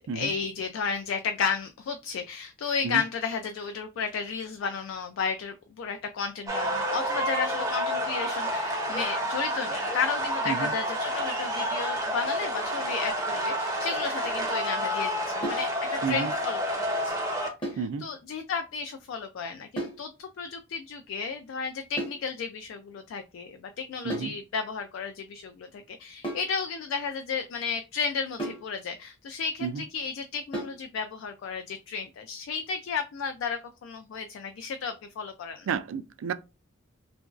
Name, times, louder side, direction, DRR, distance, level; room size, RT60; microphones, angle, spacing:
voice 1, 0.0-17.2 17.7-35.7, left 5 dB, 70° left, 0.3 m, -33 dB
sound 1, 6.5-17.5, equal, 15° right, 0.5 m, -29 dB
sound 2, 15.4-15.7 17.6-17.9 19.8-20.1 22.0-22.3 24.1-24.4 26.2-26.6 28.4-28.7 30.5-30.8, right 1 dB, 25° left, 0.7 m, -34 dB
voice 2, 35.7-36.3, right 6 dB, 75° right, 0.3 m, -31 dB
2.9 x 2.5 x 2.3 m
head